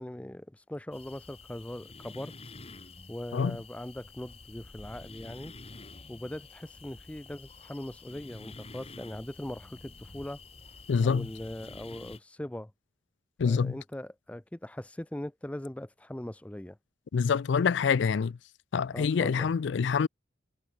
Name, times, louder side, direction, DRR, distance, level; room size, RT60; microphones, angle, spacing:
voice 1, 0.0-2.3 3.1-5.5 6.1-10.4 11.0-12.7 13.4-16.8 18.9-19.5, left 1 dB, 5° left, 0.4 m, -40 dB
sound 1, 0.9-12.2, left 3 dB, 30° left, 2.2 m, -49 dB
voice 2, 10.9-11.3 13.4-13.8 17.1-18.4 18.7-20.1, left 6 dB, 70° left, 0.4 m, -26 dB
head